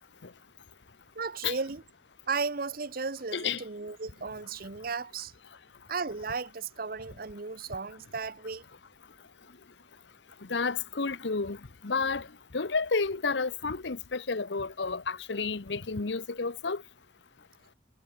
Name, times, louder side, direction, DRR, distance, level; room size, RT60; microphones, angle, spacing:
voice 1, 1.1-1.8 2.3-5.3 5.9-8.7, right 4 dB, 50° right, 1.0 m, -35 dB
voice 2, 10.5-11.6 11.8-12.3 12.5-16.8, left 4 dB, 70° left, 1.0 m, -31 dB
head